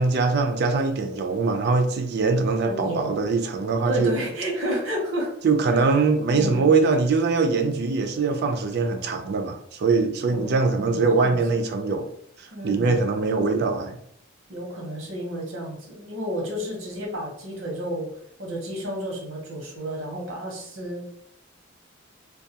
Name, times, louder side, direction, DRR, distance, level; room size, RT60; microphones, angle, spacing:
voice 1, 0.0-4.2 5.4-12.1 12.4-14.0, right 4 dB, 55° right, 6 dB, 0.4 m, -22 dB
voice 2, 2.6-3.1 3.9-5.3 6.3-6.7 10.3-11.6 12.5-13.0 14.5-18.1 18.4-21.0, equal, 85° right, -1 dB, 1.0 m, -31 dB
2.4 x 2.2 x 2.8 m, 0.67 s
head